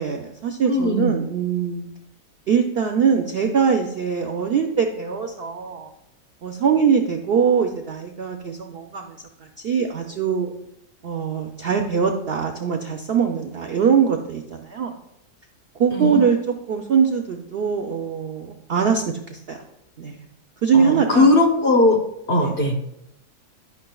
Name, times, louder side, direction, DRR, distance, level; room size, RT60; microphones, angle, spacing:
voice 1, 0.0-1.9 2.5-5.9 6.4-9.2 9.6-10.5 11.0-14.9 15.8-16.4 16.7-19.6 20.0-20.3 20.6-21.3 22.3-22.5, right 6 dB, 80° right, 4 dB, 0.5 m, -22 dB
voice 2, 0.7-1.2 15.9-16.2 20.7-22.0 22.3-22.8, left 2 dB, 40° left, 2 dB, 1.0 m, -18 dB
10.5 x 5.8 x 2.3 m, 0.80 s
omnidirectional pair, 1.7 m